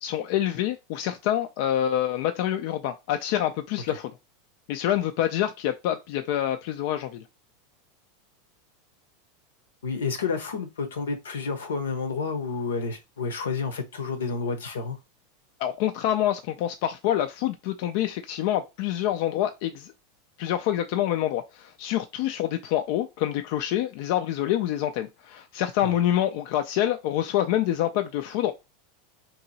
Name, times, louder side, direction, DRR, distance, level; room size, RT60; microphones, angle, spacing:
voice 1, 0.0-4.1 4.7-7.2 15.6-19.9 20.4-28.5, left 12 dB, 60° left, 0.4 m, -26 dB
voice 2, 9.8-15.0 25.8-25.9, left 4 dB, 85° left, 0.9 m, -30 dB
2.9 x 2.6 x 4.0 m
hypercardioid pair, 100°, 0 cm